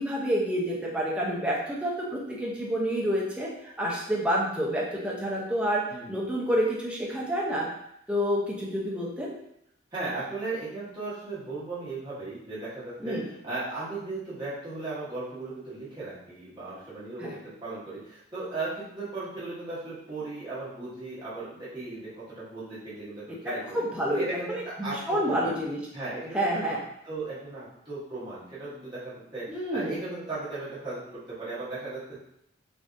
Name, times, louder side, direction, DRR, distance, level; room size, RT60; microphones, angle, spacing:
voice 1, 0.0-7.7 8.1-9.3 13.0-13.2 17.2-17.3 23.7-25.8 26.3-26.8 29.5-30.0, equal, 5° right, -4 dB, 0.5 m, -28 dB
voice 2, 9.9-23.8 24.1-25.5 25.9-26.4 26.7-26.8 27.0-32.2, right 3 dB, 20° right, -11 dB, 1.2 m, -36 dB
3.5 x 2.5 x 2.5 m, 0.76 s
head